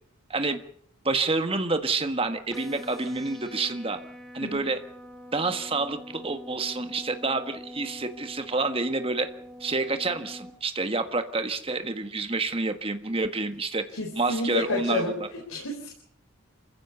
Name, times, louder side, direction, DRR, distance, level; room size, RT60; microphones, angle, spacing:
voice 1, 0.3-0.6 1.0-4.0 4.3-4.8 5.3-9.3 9.6-13.8 14.1-15.3, right 3 dB, 25° right, 8 dB, 1.5 m, -28 dB
sound 1, 2.5-10.5, left 1 dB, ahead, 3.0 m, -44 dB
voice 2, 13.9-15.9, left 1 dB, 85° left, 2 dB, 4.1 m, -31 dB
27.0 x 15.5 x 6.9 m, 0.65 s
head